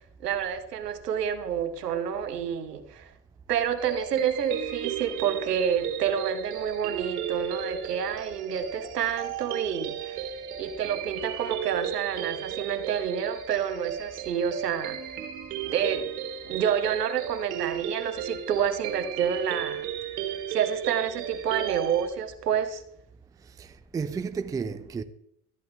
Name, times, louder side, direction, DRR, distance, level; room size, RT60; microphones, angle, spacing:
voice 1, 0.2-3.1 3.5-10.2 10.6-15.0 15.6-16.1 16.4-19.9 20.5-22.8, right 8 dB, 90° right, 1.7 m, -28 dB
sound 1, 3.8-22.1, right 9 dB, 60° right, 2.7 m, -35 dB
voice 2, 23.6-25.0, right 5 dB, 10° right, 0.5 m, -32 dB
13.5 x 10.5 x 3.5 m
hypercardioid pair, 115°, 46 cm